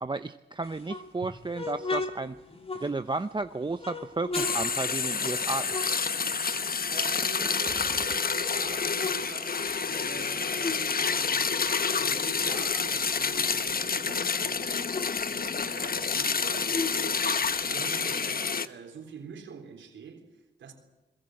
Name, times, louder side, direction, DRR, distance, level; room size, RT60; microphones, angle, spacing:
voice 1, 0.0-2.3 2.8-5.9, right 3 dB, 25° right, 0.7 m, -33 dB
sound 1, 0.6-3.3 3.8-6.7 6.9-8.3 8.7-10.9 11.2-13.8 14.1-14.2 14.5-17.9, left 3 dB, 30° left, 3.0 m, -38 dB
sound 2, 4.3-18.7, left 5 dB, 50° left, 1.1 m, -28 dB
voice 2, 6.9-9.6 9.9-20.7, right 6 dB, 85° right, 3.6 m, -45 dB
Gunshot gunfire, 7.6-8.8, right 1 dB, 10° right, 1.4 m, -44 dB
21.5 x 21.5 x 7.8 m
cardioid pair, 50°, 19 cm